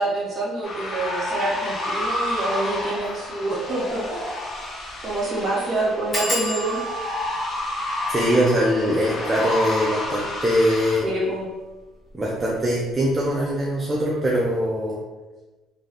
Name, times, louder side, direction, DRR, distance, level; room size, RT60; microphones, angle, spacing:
voice 1, 0.0-4.2 5.0-6.8 11.0-11.5, right 2 dB, 40° right, -5 dB, 1.3 m, -26 dB
sound 1, 0.6-11.0, left 1 dB, 35° left, 0.8 m, -30 dB
sound 2, 2.9-3.1 3.6-3.7 3.9-4.0 4.5-4.8 5.0-5.1 6.1-11.4 12.1-12.6 12.9-13.3 13.5-13.6, equal, 20° left, 1.4 m, -34 dB
voice 2, 8.1-11.0 12.1-15.0, equal, 20° right, -4 dB, 0.5 m, -22 dB
3.3 x 2.6 x 2.4 m, 1.2 s
cardioid pair, 105°, 0 cm